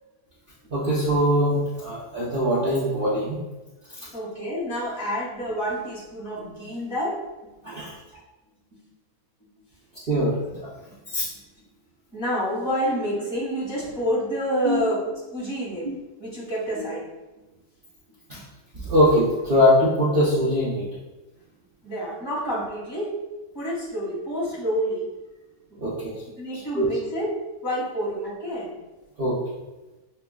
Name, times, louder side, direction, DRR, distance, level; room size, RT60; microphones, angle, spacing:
voice 1, 0.7-3.4 7.6-7.9 10.1-10.6 11.1-11.3 14.6-14.8 18.3-18.4 18.7-20.8 25.8-26.1 26.7-26.9 29.2-29.4, equal, 50° right, -8 dB, 0.7 m, -22 dB
voice 2, 4.0-7.5 7.8-7.9 8.7-8.8 11.6-11.7 12.1-15.0 15.3-15.9 16.2-17.0 17.4-17.5 21.8-23.1 23.5-25.0 26.4-27.3 27.6-28.7, equal, 40° left, -8 dB, 1.7 m, -28 dB
6.6 x 2.2 x 2.3 m, 1.1 s
omnidirectional pair, 1.6 m